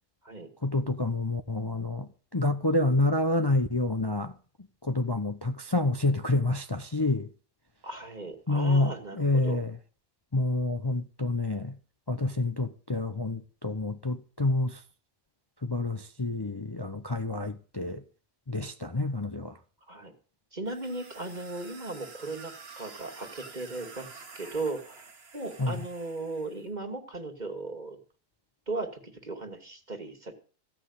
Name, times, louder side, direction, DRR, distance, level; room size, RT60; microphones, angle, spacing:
voice 1, 0.6-4.3 4.8-7.3 8.5-9.8 10.3-11.8 12.1-14.8 15.6-18.0 18.5-19.6 25.6-25.8, left 2 dB, 25° left, 0.7 m, -28 dB
voice 2, 7.8-9.6 19.9-20.1 20.5-25.0 25.3-28.0 28.7-30.3, right 2 dB, 30° right, 2.6 m, -37 dB
sound 1, 20.7-26.6, right 4 dB, 45° right, 1.6 m, -49 dB
16.0 x 6.1 x 9.8 m
omnidirectional pair, 1.5 m